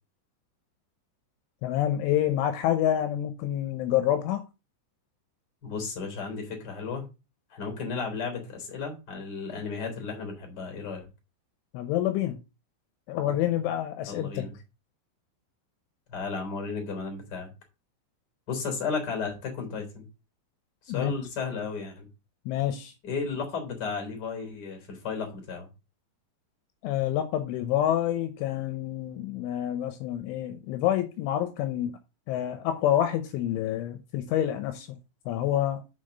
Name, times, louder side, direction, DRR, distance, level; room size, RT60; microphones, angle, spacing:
voice 1, 1.6-4.4 11.7-12.4 13.1-14.4 20.9-21.2 22.5-22.9 26.8-32.0 32.3-34.9 35.3-35.8, left 11 dB, 80° left, 3.2 m, -27 dB
voice 2, 5.6-7.0 7.5-11.1 14.0-14.6 16.1-17.5 18.5-20.1 20.8-22.1 23.0-25.7, left 5 dB, 25° left, 3.3 m, -34 dB
7.2 x 5.7 x 6.5 m
omnidirectional pair, 5.7 m